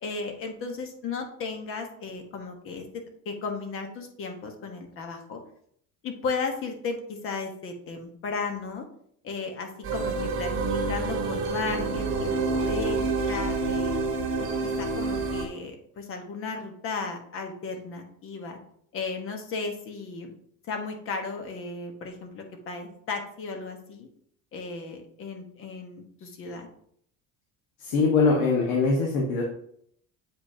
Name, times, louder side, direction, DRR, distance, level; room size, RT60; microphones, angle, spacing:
voice 1, 0.0-5.4 6.0-8.8 9.2-14.0 14.4-18.6 18.9-20.3 20.7-24.1 24.5-26.7, left 4 dB, 40° left, 4 dB, 1.3 m, -35 dB
sound 1, 9.8-15.5, right 3 dB, 40° right, 1.7 m, -28 dB
voice 2, 27.8-29.4, left 4 dB, 75° left, -1 dB, 1.5 m, -22 dB
8.1 x 5.2 x 2.8 m, 0.66 s
cardioid pair, 165°, 33 cm